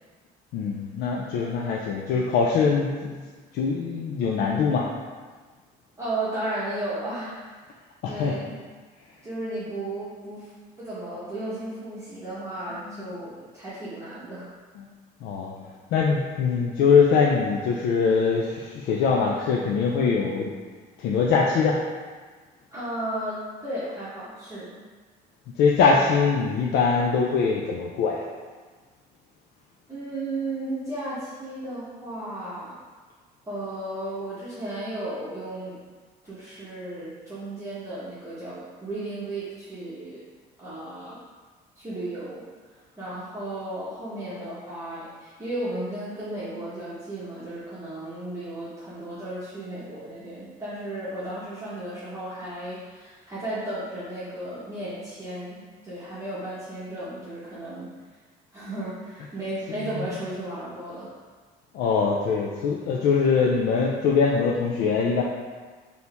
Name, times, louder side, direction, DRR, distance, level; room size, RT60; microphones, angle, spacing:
voice 1, 0.5-3.2 3.5-4.9 8.0-8.4 12.7-13.2 14.7-14.9 15.2-15.5 15.9-20.5 21.0-21.8 25.6-28.2 44.5-44.6 59.2-59.3 59.7-60.2 61.7-65.2, left 5 dB, 80° left, -2 dB, 0.5 m, -23 dB
voice 2, 6.0-7.4 8.1-8.6 9.2-10.5 10.8-14.5 22.7-24.7 29.9-32.8 33.5-35.8 36.3-40.3 40.6-41.2 41.8-42.4 43.0-57.9 58.5-61.1, right 1 dB, 20° right, -11 dB, 1.1 m, -34 dB
4.4 x 2.8 x 3.4 m, 1.4 s
cardioid pair, 110°, 17 cm